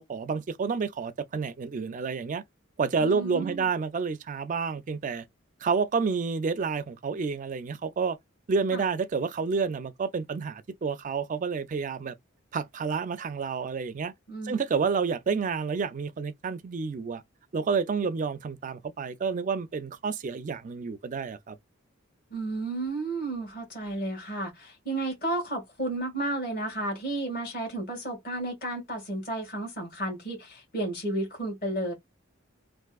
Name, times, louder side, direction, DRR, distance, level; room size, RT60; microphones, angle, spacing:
voice 1, 0.0-2.4 2.8-5.2 5.6-8.2 8.5-12.1 12.5-14.1 14.4-17.2 17.5-21.6, right 5 dB, 40° right, 0.4 m, -29 dB
voice 2, 3.0-3.7 8.7-8.8 14.3-14.6 22.3-31.9, right 2 dB, 45° left, 1.9 m, -32 dB
3.5 x 2.5 x 2.3 m
head